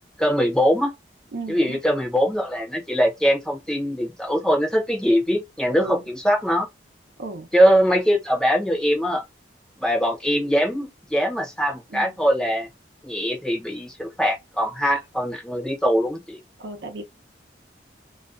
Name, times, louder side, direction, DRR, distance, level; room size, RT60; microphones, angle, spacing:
voice 1, 0.2-0.9 1.5-6.7 7.5-9.2 9.8-12.7 13.0-16.4, equal, 5° left, 0.6 m, -22 dB
voice 2, 1.3-1.8 5.8-6.0 7.2-7.5 11.9-12.1 16.6-17.0, right 2 dB, 80° right, 0.7 m, -34 dB
2.4 x 2.2 x 2.4 m
head